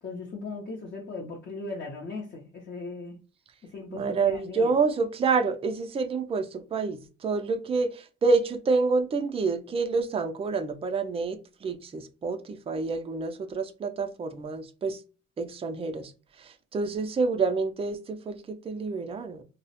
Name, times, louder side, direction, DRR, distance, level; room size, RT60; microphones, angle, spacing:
voice 1, 0.0-3.2 3.7-4.7, left 3 dB, 40° left, 0.6 m, -38 dB
voice 2, 3.9-15.0 15.4-16.1 16.4-19.4, right 4 dB, 20° right, 0.3 m, -28 dB
2.3 x 2.0 x 2.8 m
cardioid pair, 90°, 30 cm